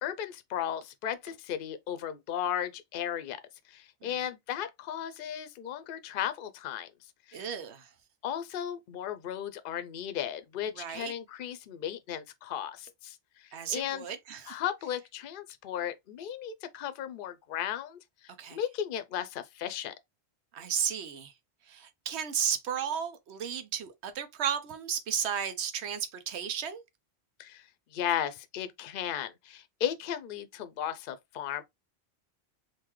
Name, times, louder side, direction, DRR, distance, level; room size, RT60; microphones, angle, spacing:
voice 1, 0.0-3.4 3.7-6.9 7.3-7.4 8.2-13.2 13.7-14.0 14.5-19.9 27.4-27.6 27.9-31.6, left 10 dB, 60° left, 0.6 m, -35 dB
voice 2, 7.3-7.9 10.7-11.1 13.5-14.6 18.4-18.6 20.5-21.3 21.7-26.8, right 8 dB, 85° right, 1.0 m, -34 dB
3.7 x 2.7 x 3.0 m
omnidirectional pair, 1.1 m